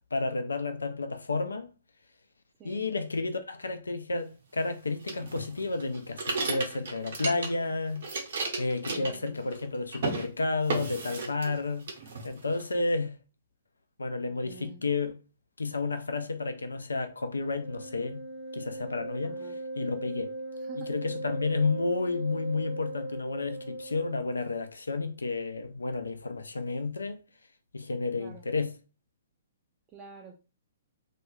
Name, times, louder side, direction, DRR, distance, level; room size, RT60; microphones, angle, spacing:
voice 1, 0.1-1.7 2.6-8.0 8.6-11.9 12.2-13.2 14.0-15.2 15.6-18.2 18.5-20.3 20.9-27.2 27.7-28.7, left 3 dB, 80° left, 0.4 m, -31 dB
sound 1, 5.1-7.7 8.0-9.7 9.9-10.3 10.7-11.6 11.9-12.6, right 3 dB, 60° right, 0.9 m, -34 dB
voice 2, 8.9-9.4 14.3-14.8 19.2-19.6 20.5-21.0 28.2-28.5 29.9-30.3, right 4 dB, 25° right, 0.4 m, -49 dB
Wind instrument woodwind instrument, 17.4-24.4, right 2 dB, 10° left, 0.7 m, -39 dB
2.3 x 2.2 x 3.1 m
figure-of-eight pair, 120°, 0 cm